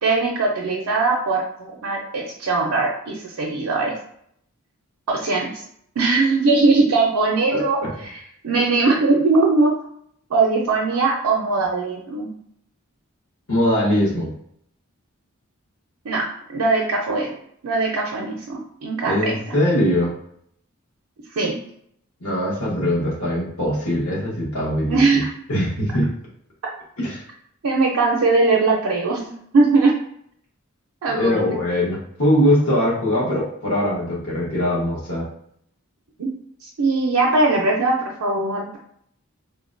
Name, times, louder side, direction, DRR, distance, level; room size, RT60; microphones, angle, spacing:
voice 1, 0.0-3.9 5.1-5.6 6.0-7.8 8.1-9.7 10.3-12.3 16.0-17.3 17.6-19.6 21.3-21.5 24.9-25.3 27.6-29.9 31.0-31.6 36.2-36.3 36.6-38.8, right 3 dB, 85° right, -2 dB, 0.5 m, -20 dB
voice 2, 7.5-7.9 13.5-14.3 19.0-20.1 22.2-25.2 25.5-26.1 27.0-27.2 31.1-35.3, left 1 dB, 75° left, -5 dB, 1.2 m, -21 dB
3.7 x 2.2 x 2.4 m, 0.68 s
head